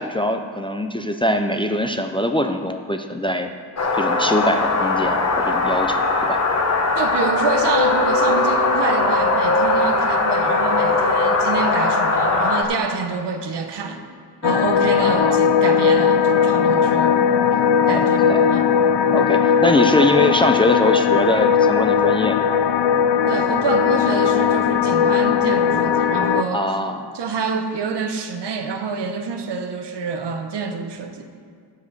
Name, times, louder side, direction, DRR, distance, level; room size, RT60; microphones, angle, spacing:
voice 1, 0.0-3.5 3.9-6.4 15.0-15.4 17.9-18.5 19.1-22.6 26.5-27.1, left 1 dB, 15° left, 5 dB, 0.3 m, -22 dB
sound 1, 3.8-12.6, left 3 dB, 40° left, 1.0 m, -19 dB
voice 2, 7.0-14.1 14.4-17.1 17.9-18.7 23.3-26.7 27.1-31.3, right 4 dB, 75° right, 6 dB, 0.9 m, -27 dB
sound 2, 14.4-26.4, left 7 dB, 80° left, 0.5 m, -18 dB
11.0 x 5.1 x 8.0 m, 2.1 s
wide cardioid pair, 165°, 42 cm